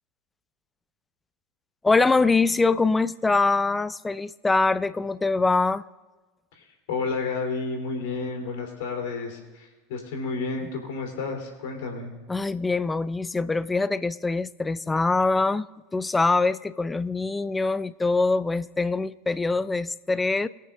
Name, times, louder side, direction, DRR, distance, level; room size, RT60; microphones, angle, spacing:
voice 1, 1.8-5.8 12.3-15.7 15.9-20.5, left 3 dB, 15° left, 17 dB, 0.4 m, -23 dB
voice 2, 6.5-12.1, left 4 dB, 65° left, 1 dB, 3.1 m, -31 dB
22.5 x 8.4 x 2.5 m, 1.2 s
figure-of-eight pair, 80°, 0 cm